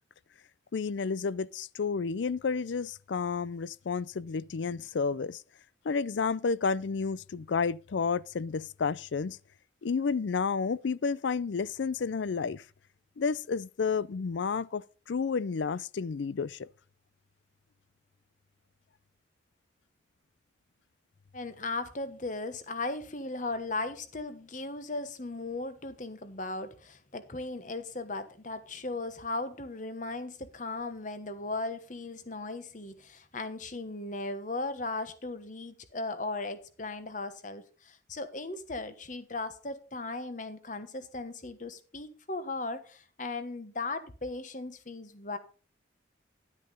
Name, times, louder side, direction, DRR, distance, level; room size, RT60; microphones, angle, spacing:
voice 1, 0.7-5.4 5.8-9.4 9.8-12.6 13.2-16.7, left 5 dB, 70° left, 0.4 m, -31 dB
voice 2, 21.3-45.4, left 2 dB, 40° left, 1.2 m, -37 dB
11.0 x 9.7 x 4.1 m
head